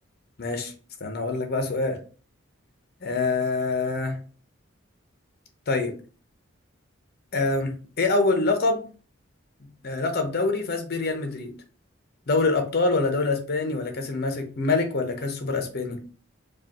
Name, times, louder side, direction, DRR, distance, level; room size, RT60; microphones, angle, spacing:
voice 1, 0.4-0.7 1.0-2.0 3.0-4.2 5.7-6.0 7.3-8.8 9.8-11.5 12.3-16.0, left 3 dB, 50° left, 0.8 m, -25 dB
4.7 x 2.4 x 2.9 m
head